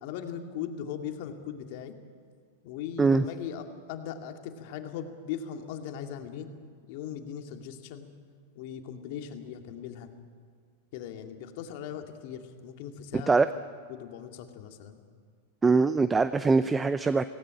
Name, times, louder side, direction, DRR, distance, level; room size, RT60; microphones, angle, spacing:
voice 1, 0.0-1.9 2.6-6.5 6.9-8.1 8.5-10.1 10.9-13.6 13.9-15.0, left 8 dB, 55° left, 5 dB, 2.2 m, -39 dB
voice 2, 15.6-17.2, right 4 dB, 15° right, 13 dB, 0.6 m, -22 dB
17.5 x 17.5 x 9.0 m, 2.1 s
hypercardioid pair, 110°, 0 cm